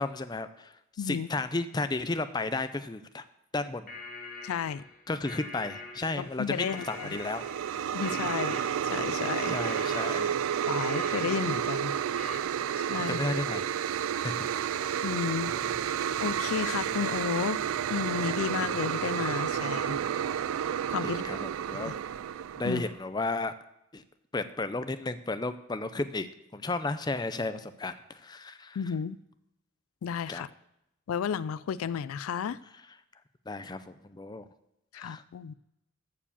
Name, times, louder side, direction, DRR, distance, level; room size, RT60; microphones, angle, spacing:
voice 1, 0.0-3.2 3.5-3.9 5.1-7.5 8.1-8.3 9.5-10.4 13.0-13.7 14.2-15.6 21.0-22.0 22.6-23.5 23.9-24.0 24.3-28.8 30.3-30.4 33.5-34.5 34.9-35.2, left 2 dB, 20° left, 0.5 m, -34 dB
voice 2, 1.0-1.3 4.4-4.8 6.2-7.2 7.9-8.6 8.8-9.6 10.7-11.9 12.9-13.2 15.0-15.5 16.2-17.6 17.9-20.0 20.9-21.3 21.9-22.0 22.6-22.8 28.8-29.2 30.0-30.5 31.1-32.6 34.9-35.5, left 7 dB, 85° left, 0.3 m, -32 dB
sound 1, 3.9-12.4, left 3 dB, 40° left, 1.9 m, -44 dB
sound 2, 6.5-23.0, right 9 dB, 80° right, 0.3 m, -31 dB
14.0 x 4.8 x 7.1 m
head